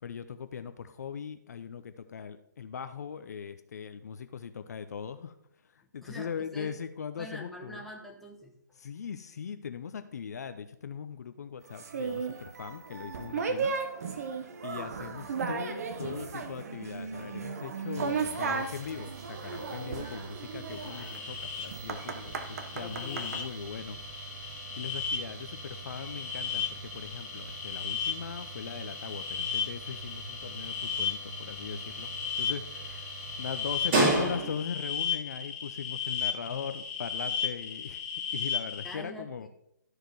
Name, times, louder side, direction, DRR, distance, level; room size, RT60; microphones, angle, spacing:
voice 1, 0.0-5.3 5.7-7.8 8.8-13.7 14.6-32.1 32.4-38.0 38.3-39.5, left 7 dB, 55° left, 10 dB, 0.6 m, -40 dB
voice 2, 5.8-6.7 7.2-8.6 14.7-15.0 22.8-23.4 38.8-39.5, left 1 dB, ahead, -1 dB, 0.9 m, -45 dB
sound 1, 11.8-23.4, right 5 dB, 50° right, 1.0 m, -35 dB
sound 2, 17.9-34.8, right 2 dB, 35° right, 2.3 m, -37 dB
sound 3, 20.7-39.0, left 7 dB, 30° left, 1.5 m, -36 dB
12.5 x 4.9 x 4.6 m, 0.75 s
figure-of-eight pair, 140°, 11 cm